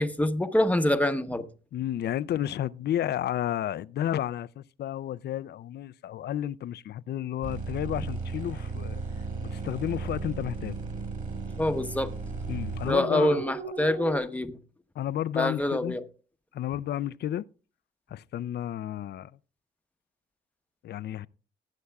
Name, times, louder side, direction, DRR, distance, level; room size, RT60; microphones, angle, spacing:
voice 1, 0.0-1.5 11.6-12.1 12.9-14.6 15.4-16.0, left 1 dB, 5° left, 0.9 m, -25 dB
voice 2, 1.7-9.0 9.4-10.8 12.5-13.4 15.0-16.0 16.5-17.5 18.1-19.3 20.8-21.3, left 11 dB, 55° left, 0.4 m, -32 dB
sound 1, 7.4-14.2, right 4 dB, 40° right, 4.8 m, -35 dB
19.5 x 8.4 x 2.3 m
cardioid pair, 90°, 20 cm